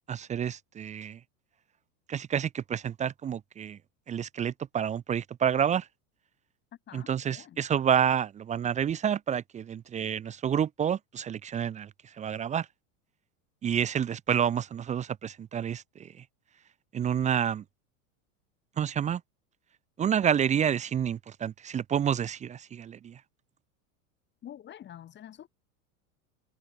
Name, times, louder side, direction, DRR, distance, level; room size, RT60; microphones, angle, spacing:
voice 1, 0.1-1.2 2.1-3.8 4.1-5.9 6.9-11.9 12.2-12.7 13.6-16.1 16.9-17.6 18.8-19.2 20.0-23.2, right 8 dB, 20° right, 0.6 m, -29 dB
voice 2, 6.9-7.6 24.4-25.5, left 11 dB, 25° left, 1.4 m, -47 dB
supercardioid pair, 135°, 40 cm